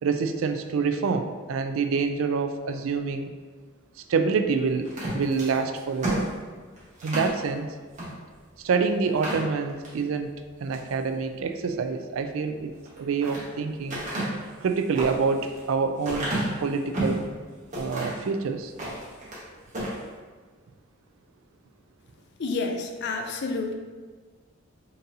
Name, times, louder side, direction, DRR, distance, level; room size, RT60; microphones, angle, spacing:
voice 1, 0.0-3.3 4.1-6.3 7.0-7.8 8.6-10.3 10.6-14.0 14.6-16.3 16.6-17.3 17.8-18.7, right 5 dB, 75° right, 8 dB, 0.3 m, -27 dB
sound 1, 4.8-7.4 7.9-8.1 8.5-8.6 9.0-10.0 10.5-10.9 12.7-13.4 13.9-17.2 17.7-18.3 18.7-19.4 19.7-20.0, right 1 dB, 40° right, 1.3 m, -32 dB
voice 2, 22.4-23.7, left 3 dB, 55° left, 4 dB, 0.5 m, -29 dB
3.9 x 3.9 x 2.7 m, 1.5 s
head